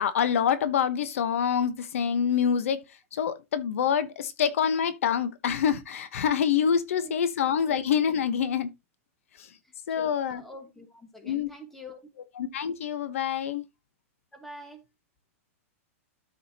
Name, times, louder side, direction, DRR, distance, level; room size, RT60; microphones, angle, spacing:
voice 1, 0.0-2.8 3.1-8.7 9.4-9.5 9.9-10.4 11.2-11.5 12.4-13.6, left 8 dB, 65° left, 1.0 m, -26 dB
voice 2, 7.0-7.9 9.6-12.0 14.3-14.9, left 1 dB, 5° left, 1.5 m, -47 dB
13.0 x 4.9 x 2.8 m
hypercardioid pair, 170°, 8 cm